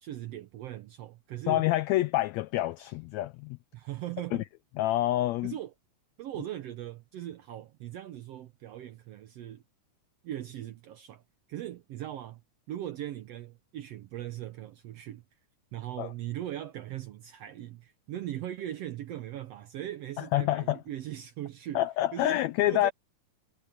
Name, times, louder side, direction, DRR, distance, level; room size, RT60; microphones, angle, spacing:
voice 1, 0.0-1.7 3.7-4.4 5.4-5.7 6.2-9.6 10.2-11.2 11.5-12.4 12.7-15.2 15.7-21.8 22.1-22.4 22.6-22.9, right 12 dB, 75° right, 1.5 m, -39 dB
voice 2, 1.5-3.6 4.8-5.5 16.0-16.1 20.2-20.8 21.7-22.9, left 15 dB, 90° left, 1.5 m, -27 dB
omnidirectional pair, 3.7 m